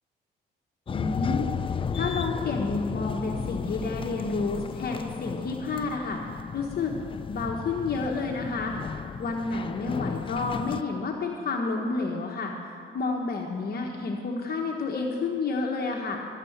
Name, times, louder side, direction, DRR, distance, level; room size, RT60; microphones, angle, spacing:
voice 1, 0.9-1.6 1.9-6.2 6.5-6.9 7.3-16.2, left 3 dB, 50° left, 0 dB, 1.2 m, -30 dB
sound 1, 0.9-10.8, left 6 dB, 25° left, 0.4 m, -34 dB
13.0 x 6.8 x 7.9 m, 2.2 s
cardioid pair, 90°, 20 cm